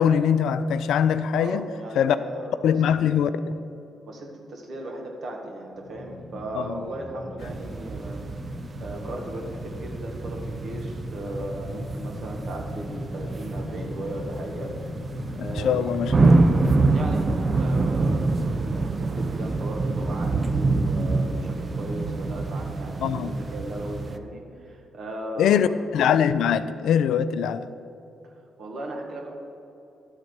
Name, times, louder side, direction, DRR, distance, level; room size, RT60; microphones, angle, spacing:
voice 1, 0.0-1.7 2.0-2.2 2.6-3.3 6.5-6.8 15.5-16.3 23.0-23.3 25.4-25.7 25.9-27.7, left 8 dB, 80° left, 0.3 m, -22 dB
voice 2, 1.3-2.8 4.1-8.3 8.8-14.7 15.3-15.9 16.2-16.5 16.9-25.6 28.6-29.3, right 1 dB, 65° right, 1.6 m, -37 dB
sound 1, 5.8-19.0 19.3-19.4, left 1 dB, 30° left, 0.7 m, -38 dB
sound 2, 7.4-24.2, right 3 dB, 40° right, 0.5 m, -26 dB
11.5 x 4.0 x 6.6 m
supercardioid pair, 50°, 0 cm